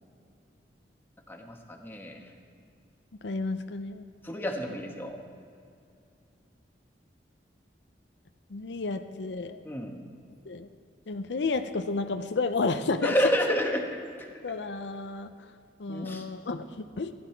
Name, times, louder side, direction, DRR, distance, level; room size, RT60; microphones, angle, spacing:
voice 1, 1.3-2.2 4.2-5.2 9.6-10.0 13.0-13.8 15.9-16.2, equal, 15° left, 2 dB, 1.2 m, -29 dB
voice 2, 3.2-4.0 4.7-4.8 8.5-9.6 10.5-10.7 11.1-13.3 14.4-15.3 15.8-16.7 17.0-17.1, left 3 dB, 85° left, 9 dB, 0.6 m, -31 dB
15.5 x 11.0 x 4.5 m, 2.4 s
head